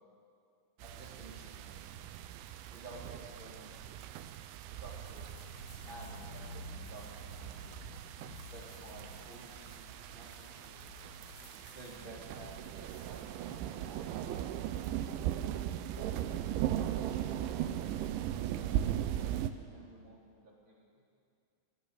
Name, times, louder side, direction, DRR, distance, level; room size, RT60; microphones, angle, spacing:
voice 1, 0.8-1.8 2.7-3.8 4.7-5.3 5.8-7.8 8.5-10.8 11.7-14.6 15.9-16.3 16.7-19.4 19.7-21.0, right 1 dB, 25° right, -4 dB, 4.6 m, -52 dB
sound 1, 0.8-19.5, right 11 dB, 85° right, 3.2 m, -39 dB
sound 2, 4.9-13.2, left 2 dB, 45° left, 6.1 m, -52 dB
23.5 x 20.0 x 6.9 m, 2.4 s
omnidirectional pair, 5.3 m